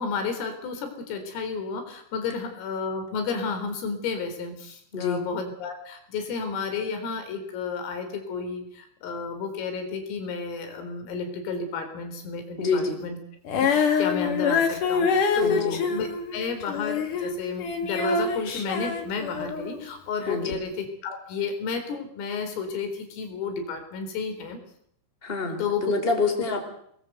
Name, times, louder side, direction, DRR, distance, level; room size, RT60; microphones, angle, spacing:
voice 1, 0.0-13.2 13.6-24.6 25.6-25.9 26.3-26.4, left 5 dB, 90° left, 7 dB, 6.7 m, -32 dB
voice 2, 4.9-5.2 12.6-13.0 15.4-15.8 20.2-20.6 25.2-26.6, left 3 dB, 10° left, 4 dB, 4.1 m, -27 dB
Female singing, 13.5-19.8 20.5-20.6, left 5 dB, 50° left, 3.3 m, -25 dB
26.5 x 20.0 x 8.1 m, 0.71 s
omnidirectional pair, 5.8 m